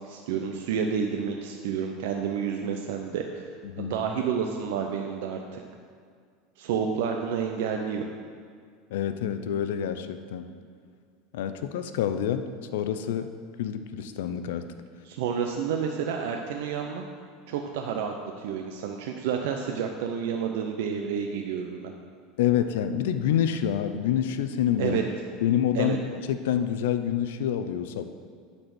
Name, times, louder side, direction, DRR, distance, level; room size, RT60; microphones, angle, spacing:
voice 1, 0.0-5.6 6.6-8.0 15.0-17.1 17.5-21.9 24.8-25.0 25.7-26.0, right 7 dB, 80° right, 3 dB, 0.6 m, -30 dB
voice 2, 8.9-10.5 11.3-13.3 13.6-14.7 22.4-25.0 25.4-26.0 26.3-28.0, left 9 dB, 80° left, 9 dB, 0.5 m, -27 dB
9.8 x 4.2 x 6.1 m, 2.1 s
supercardioid pair, 120°, 0 cm